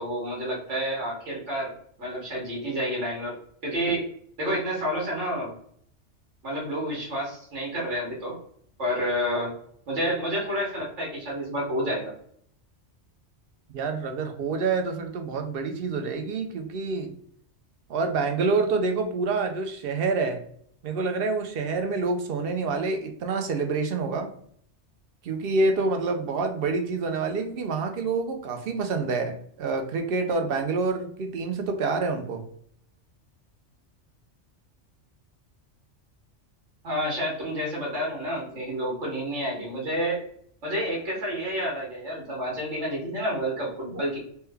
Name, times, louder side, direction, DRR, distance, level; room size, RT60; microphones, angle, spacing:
voice 1, 0.0-1.7 2.0-3.4 3.6-4.0 4.4-5.5 6.4-8.4 8.8-9.5 9.9-12.1 36.8-40.2 40.6-44.2, equal, 80° right, -3 dB, 1.5 m, -29 dB
voice 2, 13.7-17.1 17.9-20.4 20.8-24.3 25.2-32.4, right 3 dB, 60° right, 5 dB, 0.7 m, -27 dB
3.2 x 2.1 x 3.3 m, 0.63 s
omnidirectional pair, 1.2 m